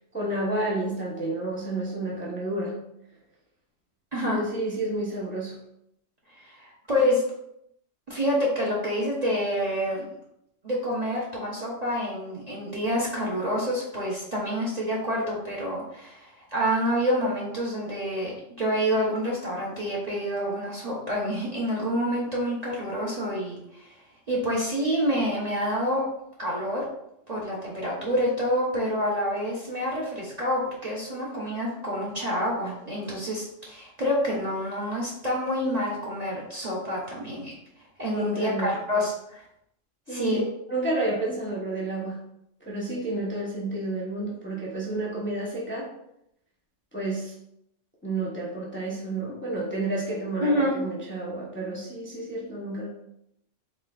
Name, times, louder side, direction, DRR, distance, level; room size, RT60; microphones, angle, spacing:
voice 1, 0.1-2.8 4.3-5.6 38.1-38.8 40.1-40.4 40.7-42.2 42.6-45.9 46.9-47.3 48.0-52.9, right 2 dB, 10° left, -4 dB, 0.7 m, -30 dB
voice 2, 6.4-7.2 8.1-10.1 10.6-18.3 18.6-23.9 24.3-26.0 26.4-26.9 27.3-37.5 38.0-39.4 40.1-40.4 50.4-50.7, equal, 40° right, -5 dB, 0.7 m, -27 dB
4.2 x 3.7 x 2.3 m, 0.78 s
omnidirectional pair, 1.3 m